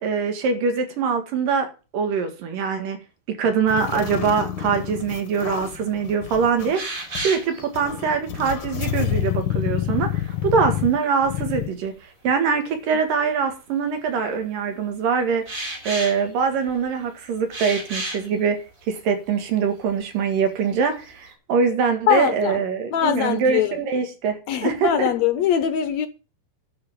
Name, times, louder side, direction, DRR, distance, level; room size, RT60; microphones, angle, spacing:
voice 1, 0.0-1.7 1.9-3.0 3.3-6.9 7.2-15.4 15.9-25.1, right 6 dB, 75° right, 3.7 m, -23 dB
sound 1, 3.7-6.7 7.1-7.3 7.6-11.7, left 10 dB, 60° left, 1.4 m, -28 dB
sound 2, 5.4-5.5 6.0-6.1 6.7-7.7 9.8-10.6 11.8-11.9 12.8-12.9 14.1-14.4 15.5-16.9 17.5-18.3 19.0-19.1 19.4-19.5 19.9-20.4 20.7-21.3, right 1 dB, 30° right, 4.8 m, -32 dB
voice 2, 22.1-22.6 22.9-23.8 24.5-26.1, left 9 dB, 75° left, 1.6 m, -22 dB
11.5 x 5.7 x 8.6 m
omnidirectional pair, 4.0 m